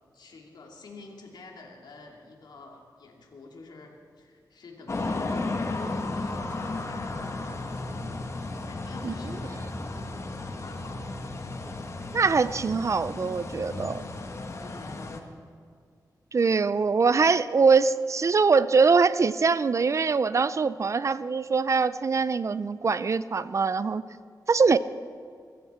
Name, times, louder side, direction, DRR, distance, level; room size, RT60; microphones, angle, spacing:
voice 1, 0.1-8.3 8.6-10.3 10.6-11.0 14.6-15.1, left 3 dB, 85° left, 1 dB, 2.5 m, -47 dB
sound 1, 4.9-15.2, left 2 dB, 40° left, 1.4 m, -34 dB
voice 2, 12.1-14.1 16.3-24.0 24.5-24.8, right 5 dB, 45° right, 16 dB, 0.4 m, -23 dB
23.0 x 14.5 x 4.3 m, 2.2 s
wide cardioid pair, 125°, 7 cm